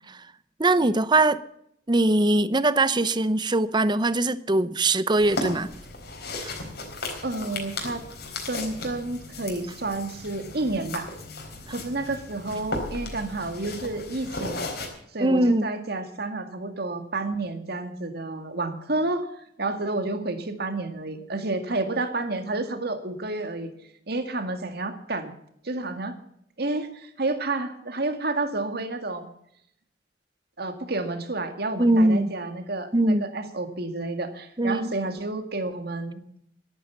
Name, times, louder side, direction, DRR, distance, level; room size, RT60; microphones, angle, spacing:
voice 1, 0.6-1.4 1.9-5.7 6.4-6.5 15.2-15.7 31.8-32.3 32.9-33.2 34.6-34.9, right 2 dB, 25° right, 0.7 m, -21 dB
sound 1, 5.2-14.9, left 2 dB, 60° left, 4.1 m, -36 dB
voice 2, 7.2-8.1 8.4-11.1 11.7-14.6 15.1-19.3 19.6-23.7 24.1-25.3 25.6-26.2 26.6-29.3 30.6-36.2, right 2 dB, 55° right, 2.0 m, -30 dB
13.0 x 12.0 x 7.1 m
head